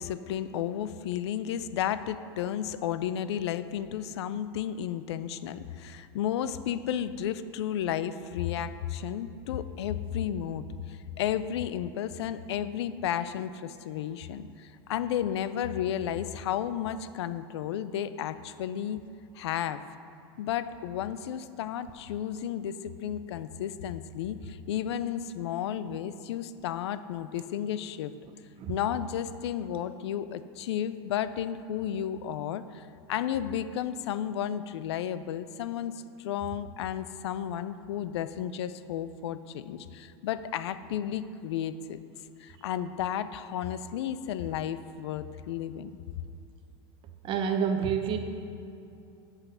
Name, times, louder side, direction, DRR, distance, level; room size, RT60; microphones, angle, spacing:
voice 1, 0.0-19.0 19.3-19.8 20.4-28.1 28.7-42.0 42.4-45.9, left 10 dB, 85° left, 13 dB, 0.5 m, -33 dB
voice 2, 47.2-48.2, right 7 dB, 40° right, 6 dB, 0.9 m, -28 dB
8.3 x 5.7 x 6.7 m, 2.7 s
supercardioid pair, 130°, 14 cm